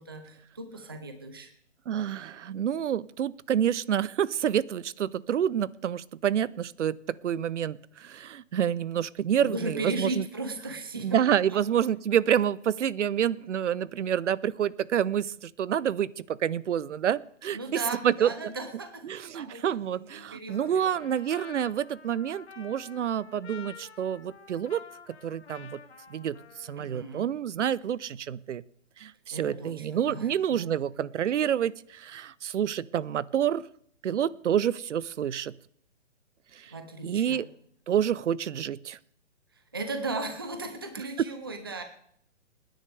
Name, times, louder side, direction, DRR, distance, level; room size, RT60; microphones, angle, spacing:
voice 1, 0.0-1.5 9.3-11.6 17.5-20.9 26.7-27.3 29.3-30.7 36.7-37.4 39.5-41.8, right 2 dB, 20° right, 7 dB, 0.6 m, -37 dB
voice 2, 1.9-10.2 11.0-17.6 18.0-18.3 19.1-24.8 25.2-25.8 26.1-28.6 29.0-33.7 34.0-35.5 36.5-36.7 37.0-37.5 37.9-39.0, right 9 dB, 70° right, 20 dB, 0.6 m, -28 dB
Trumpet, 20.5-27.1, left 6 dB, 60° left, 1.6 m, -49 dB
26.0 x 10.0 x 3.4 m, 0.66 s
hypercardioid pair, 175°, 37 cm